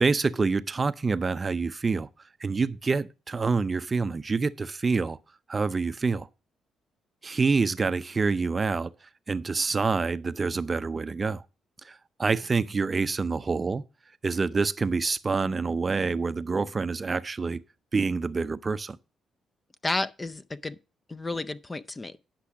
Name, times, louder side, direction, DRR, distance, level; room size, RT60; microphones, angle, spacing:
voice 1, 0.0-2.1 2.4-5.2 5.5-6.3 7.2-8.9 9.3-11.4 11.8-13.8 14.2-17.6 17.9-19.0, right 4 dB, 30° right, 0.5 m, -27 dB
voice 2, 19.8-20.8 21.1-22.3, left 2 dB, 20° left, 0.5 m, -32 dB
10.0 x 6.0 x 5.8 m
cardioid pair, 90°, 0 cm